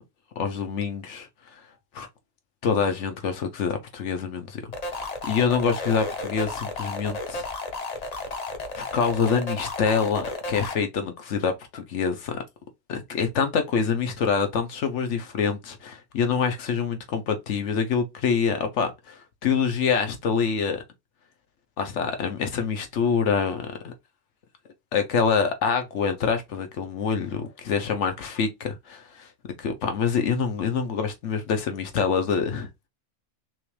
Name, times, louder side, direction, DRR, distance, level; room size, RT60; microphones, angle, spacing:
voice 1, 0.4-1.3 1.9-2.1 2.6-4.6 4.9-7.5 8.8-12.4 12.9-20.8 21.8-23.9 24.9-29.3 29.6-32.9, left 6 dB, 70° left, 1.1 m, -26 dB
sound 1, 4.7-10.7, left 3 dB, 35° left, 0.8 m, -33 dB
6.0 x 2.4 x 3.2 m
omnidirectional pair, 1.3 m